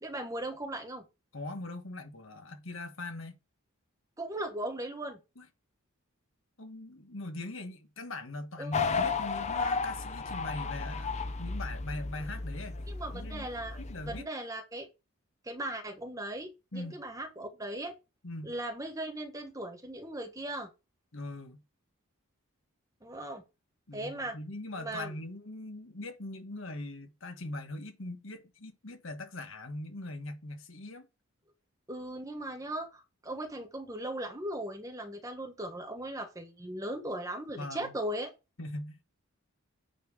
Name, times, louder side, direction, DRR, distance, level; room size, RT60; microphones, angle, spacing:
voice 1, 0.0-1.0 4.2-5.2 8.6-8.7 12.9-13.8 14.1-14.9 15.4-17.9 18.4-20.7 23.0-23.4 23.9-24.4 24.8-25.1 31.9-38.3, right 1 dB, 15° right, 1.4 m, -38 dB
voice 2, 1.3-3.4 5.4-5.5 6.6-11.1 11.4-12.8 13.1-13.5 13.8-14.3 16.7-17.0 18.2-18.6 21.1-21.6 23.9-31.1 37.6-37.9 38.6-39.0, left 2 dB, 65° left, 1.5 m, -41 dB
sound 1, 8.7-14.2, left 4 dB, 30° left, 0.6 m, -34 dB
9.1 x 4.4 x 4.9 m
head